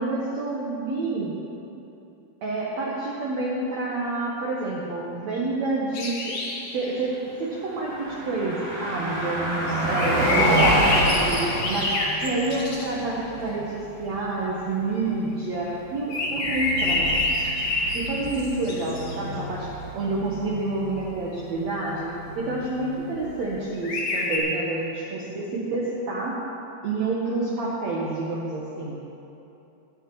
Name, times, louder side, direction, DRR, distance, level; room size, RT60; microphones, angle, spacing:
voice 1, 0.0-1.3 2.4-6.4 6.7-17.6 17.9-22.1 22.4-26.4 26.8-29.0, right 2 dB, 90° right, -5 dB, 1.5 m, -28 dB
sound 1, 5.9-6.9 10.0-13.0 16.1-19.2 23.8-24.4, left 2 dB, 80° left, 1.3 m, -27 dB
Car passing by, 7.5-23.6, right 1 dB, 45° right, 4.4 m, -29 dB
19.0 x 10.5 x 3.1 m, 2.9 s
omnidirectional pair, 4.9 m